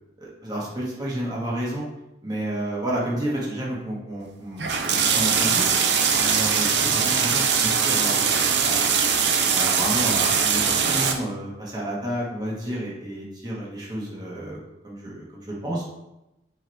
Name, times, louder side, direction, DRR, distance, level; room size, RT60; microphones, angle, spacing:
voice 1, 0.2-1.9 2.2-4.7 5.1-5.8 6.2-8.2 8.6-9.0 9.5-15.8, right 1 dB, 20° right, -6 dB, 1.6 m, -30 dB
sound 1, 4.6-11.1, right 6 dB, 85° right, 0.7 m, -21 dB
6.3 x 3.7 x 4.5 m, 0.92 s
head